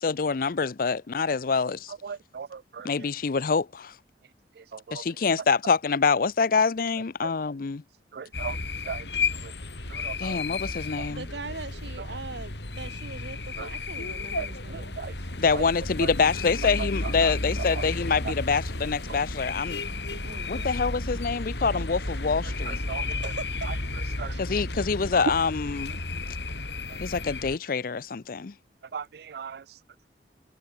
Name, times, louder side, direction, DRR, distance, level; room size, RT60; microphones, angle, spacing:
voice 1, 0.0-1.9 2.8-3.9 4.9-7.8 10.2-11.3 15.4-19.8 20.5-22.8 24.4-26.0 27.0-28.5, left 5 dB, 55° left, 0.5 m, -26 dB
voice 2, 8.1-8.6 8.9-9.0 10.0-10.4 14.4-14.5 15.0-15.1 22.9-23.0 24.2-24.3 28.9-29.6, right 6 dB, 60° right, 0.4 m, -36 dB
sound 1, 8.3-27.6, left 3 dB, 75° left, 3.8 m, -33 dB
voice 3, 11.1-15.0 17.4-17.7 20.2-20.9 23.1-23.7 24.3-24.4, right 3 dB, 85° right, 2.5 m, -41 dB
head